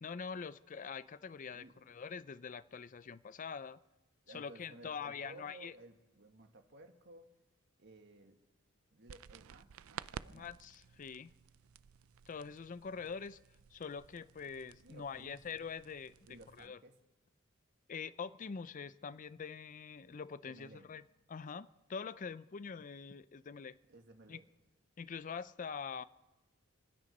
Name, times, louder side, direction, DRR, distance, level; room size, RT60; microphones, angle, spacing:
voice 1, 0.0-3.8 4.3-5.7 10.3-11.3 12.3-13.4 13.7-16.1 16.6-16.8 17.9-21.0 21.3-23.8 24.3-24.4 25.0-26.0, left 6 dB, 40° left, 15 dB, 0.4 m, -44 dB
voice 2, 1.5-1.8 4.3-7.3 7.8-8.4 8.9-10.5 14.8-15.4 16.3-17.0 20.4-20.9 23.9-24.5, right 2 dB, 55° right, 5 dB, 1.8 m, -57 dB
sound 1, 9.1-16.7, right 7 dB, 85° right, 0.4 m, -53 dB
28.0 x 9.6 x 5.3 m, 1.1 s
head